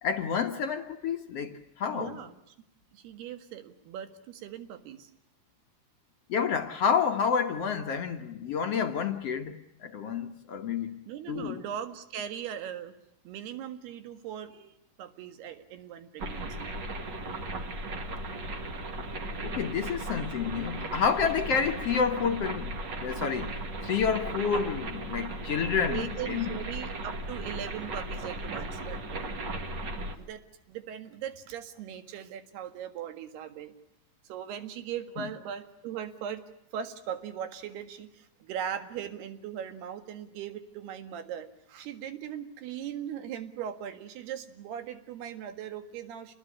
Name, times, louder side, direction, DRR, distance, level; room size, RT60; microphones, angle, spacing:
voice 1, 0.0-2.2 6.3-9.5 9.8-11.0 11.3-11.6 19.4-23.5 23.8-26.6 35.2-35.3, left 6 dB, 70° left, 5 dB, 1.5 m, -29 dB
voice 2, 1.9-2.6 2.9-5.1 11.1-12.9 13.3-14.7 15.0-16.7 25.9-29.3 30.2-30.4 30.7-33.7 34.3-36.4 36.7-46.3, right 9 dB, 75° right, 9 dB, 3.8 m, -39 dB
sound 1, 16.2-30.2, right 2 dB, 40° right, 1.6 m, -36 dB
28.0 x 20.5 x 9.8 m, 0.83 s
omnidirectional pair, 4.7 m